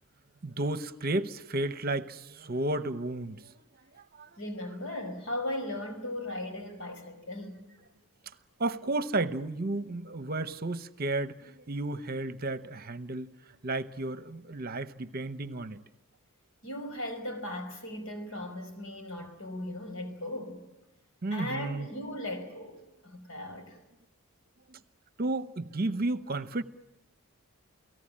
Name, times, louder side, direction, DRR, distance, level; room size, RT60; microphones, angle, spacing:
voice 1, 0.4-3.6 3.9-4.4 8.6-13.4 13.6-15.8 21.2-21.9 24.7-24.8 25.2-26.6, right 2 dB, 40° right, 0.9 m, -33 dB
voice 2, 4.4-7.8 16.6-20.7 21.3-23.8, left 1 dB, 65° left, 5.2 m, -38 dB
29.5 x 18.0 x 8.7 m
head